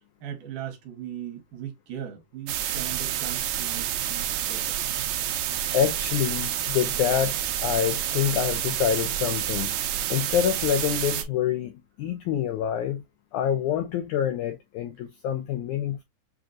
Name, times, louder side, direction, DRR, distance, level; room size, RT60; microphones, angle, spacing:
voice 1, 0.2-4.8, right 10 dB, 70° right, 2.4 m, -38 dB
sound 1, 2.5-11.2, right 11 dB, 90° right, 1.5 m, -29 dB
voice 2, 5.7-9.7 10.1-13.0 13.3-16.0, left 10 dB, 80° left, 1.7 m, -26 dB
7.1 x 2.6 x 2.4 m
omnidirectional pair, 4.0 m